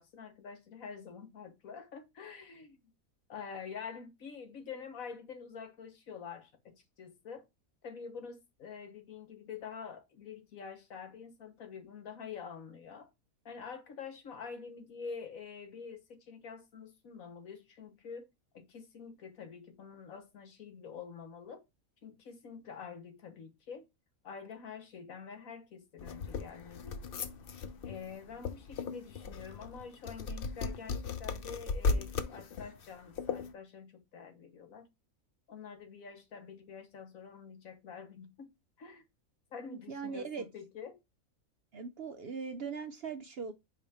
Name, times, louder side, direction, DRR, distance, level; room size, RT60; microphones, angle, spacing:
voice 1, 0.0-2.8 3.3-7.5 7.8-13.1 13.4-18.3 18.5-21.6 22.0-23.8 24.2-27.0 27.8-34.9 35.5-38.5 38.8-39.0 39.5-41.0, left 6 dB, 75° left, 1.6 m, -47 dB
sound 1, 26.0-33.5, left 4 dB, 50° left, 0.7 m, -37 dB
voice 2, 39.7-40.4 41.7-43.5, right 5 dB, 60° right, 0.7 m, -40 dB
5.2 x 4.8 x 4.2 m
omnidirectional pair, 1.5 m